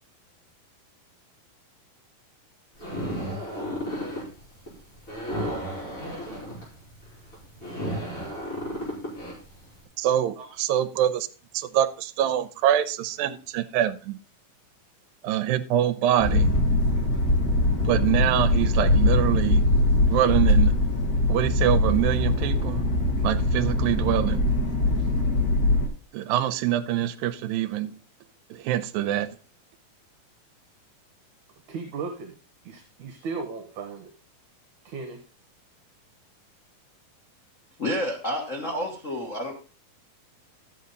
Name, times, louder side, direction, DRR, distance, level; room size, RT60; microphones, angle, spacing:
sound 1, 2.8-9.7, equal, 20° left, 5.0 m, -33 dB
voice 1, 5.3-5.6 10.4-10.5 31.7-32.3 32.6-34.1 34.8-35.2, right 4 dB, 65° right, 2.5 m, -36 dB
voice 2, 10.0-11.3 11.5-14.2 15.2-16.5 17.8-19.6 19.9-20.7 21.3-22.8 23.2-24.4 26.1-27.9 28.5-29.3, right 11 dB, 85° right, 2.4 m, -25 dB
sound 2, 16.2-25.9, left 1 dB, 50° left, 1.0 m, -22 dB
voice 3, 37.8-39.5, left 1 dB, 85° left, 0.7 m, -29 dB
12.5 x 7.9 x 4.0 m
omnidirectional pair, 4.1 m